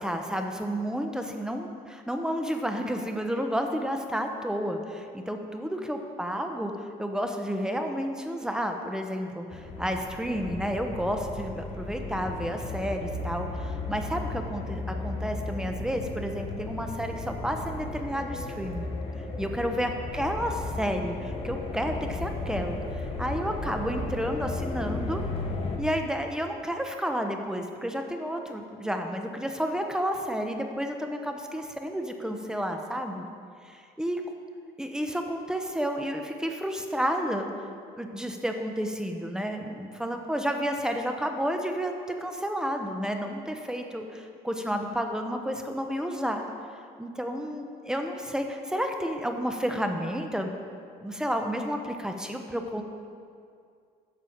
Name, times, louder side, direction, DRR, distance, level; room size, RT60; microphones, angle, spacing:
voice 1, 0.0-6.7 7.0-18.9 19.4-25.2 25.8-33.2 33.6-34.2 34.8-37.5 38.0-41.9 42.2-46.4 47.0-50.5 51.0-52.8, equal, 5° right, 4 dB, 0.9 m, -31 dB
sound 1, 9.5-25.8, left 2 dB, 35° left, 1.3 m, -35 dB
11.0 x 6.9 x 4.5 m, 2.3 s
cardioid pair, 110°, 17 cm